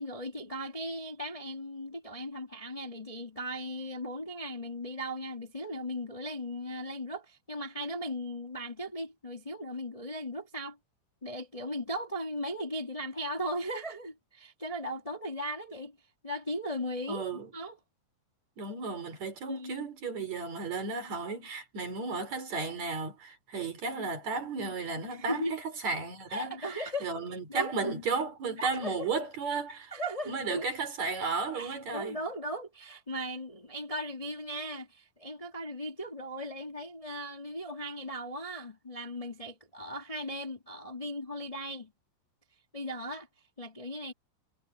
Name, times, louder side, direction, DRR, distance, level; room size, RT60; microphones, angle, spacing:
voice 1, 0.0-10.8 11.2-16.0 16.2-17.8 19.5-19.9 25.1-25.6 26.3-28.2 28.6-29.1 29.7-30.7 31.5-41.9 42.7-43.3 43.6-44.1, equal, 25° left, 0.7 m, -37 dB
voice 2, 17.1-17.5 18.6-29.9 30.3-32.2, right 4 dB, 40° right, 5.6 m, -34 dB
omnidirectional pair, 5.1 m